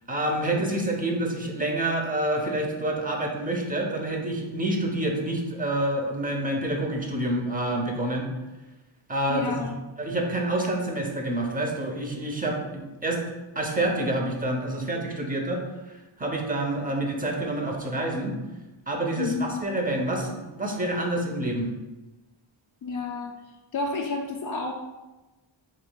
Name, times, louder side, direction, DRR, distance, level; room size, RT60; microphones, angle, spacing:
voice 1, 0.1-8.3 9.1-9.7 10.0-13.2 13.5-15.6 15.9-18.3 18.9-21.7, right 1 dB, 15° right, 1 dB, 0.8 m, -28 dB
voice 2, 9.3-9.8 19.2-19.7 22.8-23.3 23.7-24.7, left 4 dB, 45° left, 0 dB, 0.5 m, -30 dB
7.4 x 3.0 x 2.3 m, 1.1 s
wide cardioid pair, 100°, 50 cm